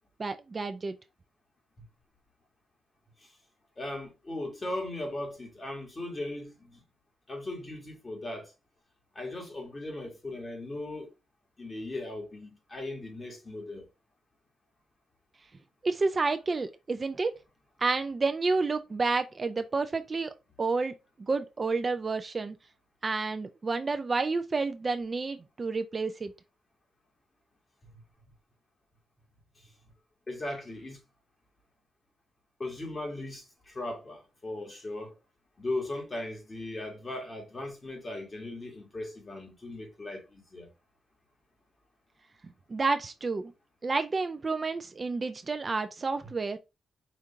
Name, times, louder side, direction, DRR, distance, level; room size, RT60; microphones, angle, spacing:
voice 1, 0.2-1.0 15.8-17.4 17.8-20.9 21.2-22.6 23.0-26.3 42.7-43.5 43.8-46.6, right 3 dB, 35° right, 0.4 m, -30 dB
voice 2, 3.8-6.8 7.3-8.5 9.2-11.1 11.6-13.9 27.8-28.0 30.3-31.0 32.6-35.2 35.6-40.7, left 2 dB, 30° left, 1.9 m, -38 dB
5.1 x 2.8 x 3.6 m
cardioid pair, 100°, 0 cm